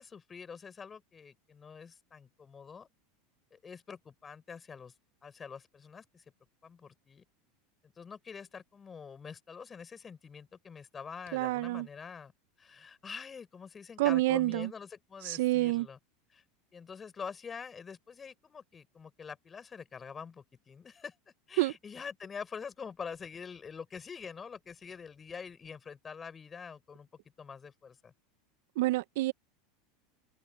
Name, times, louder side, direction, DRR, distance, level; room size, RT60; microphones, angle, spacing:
voice 1, 0.0-2.9 3.5-4.9 5.2-6.2 6.6-7.2 7.8-12.3 12.6-16.0 16.3-16.4 16.7-27.1 27.4-28.1, left 6 dB, 25° left, 6.3 m, -45 dB
voice 2, 11.3-11.9 14.0-14.7 15.2-15.9 21.6-21.7 28.8-29.3, right 18 dB, 70° right, 1.2 m, -28 dB
hypercardioid pair, 90°, 0 cm